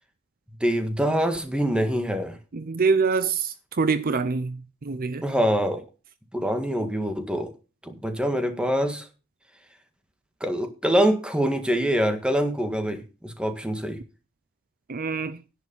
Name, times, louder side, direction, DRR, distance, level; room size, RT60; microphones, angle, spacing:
voice 1, 0.6-2.4 5.2-5.8 6.3-7.5 7.8-9.1 10.4-14.0, equal, 5° right, 1.8 m, -25 dB
voice 2, 2.5-5.2 14.9-15.4, right 4 dB, 45° right, 0.6 m, -25 dB
10.5 x 8.5 x 5.5 m
head